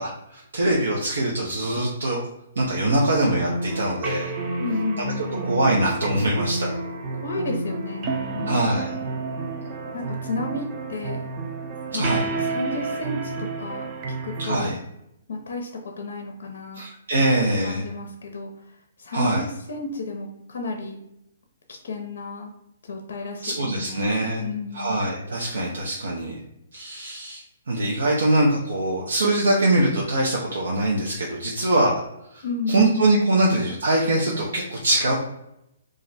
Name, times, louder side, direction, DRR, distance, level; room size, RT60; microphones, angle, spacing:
voice 1, 0.0-2.2 2.6-4.3 5.4-6.8 8.5-8.9 11.9-12.2 14.4-14.8 16.7-17.9 19.1-19.4 23.4-24.4 24.7-26.4 26.7-27.4 27.7-32.0 32.3-35.1, right 1 dB, 85° right, -2 dB, 0.5 m, -23 dB
sound 1, 3.3-14.6, right 3 dB, 30° right, 0.5 m, -30 dB
voice 2, 4.6-5.6 7.2-8.8 9.9-11.3 11.9-12.1 12.4-13.9 14.2-14.8 15.3-16.8 17.2-17.3 17.6-18.5 19.0-21.0 21.7-22.5 22.8-24.1 24.4-25.0 32.4-32.9, left 3 dB, 75° left, 3 dB, 0.5 m, -32 dB
2.4 x 2.1 x 3.9 m, 0.82 s
hypercardioid pair, 140°, 0 cm